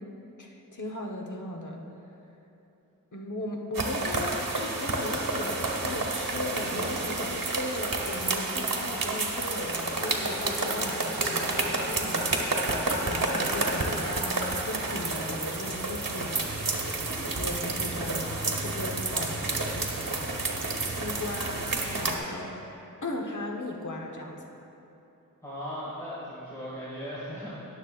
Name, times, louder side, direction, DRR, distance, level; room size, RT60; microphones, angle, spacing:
voice 1, 0.0-1.8 3.1-16.5 17.3-22.6 23.0-24.5, left 1 dB, 60° left, 0 dB, 1.2 m, -37 dB
sound 1, 3.7-22.2, right 2 dB, 75° right, 1.1 m, -30 dB
voice 2, 25.4-27.5, equal, 10° left, -9 dB, 2.1 m, -37 dB
20.0 x 7.2 x 2.5 m, 3.0 s
wide cardioid pair, 60°, 34 cm